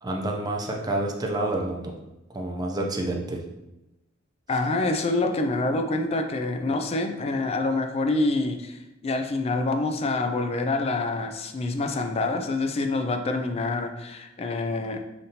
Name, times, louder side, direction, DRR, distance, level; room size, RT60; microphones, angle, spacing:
voice 1, 0.0-1.9 2.3-3.4, right 1 dB, 20° right, 1 dB, 0.5 m, -28 dB
voice 2, 4.5-15.0, left 2 dB, 30° left, 5 dB, 0.3 m, -26 dB
5.1 x 2.7 x 2.8 m, 0.98 s
head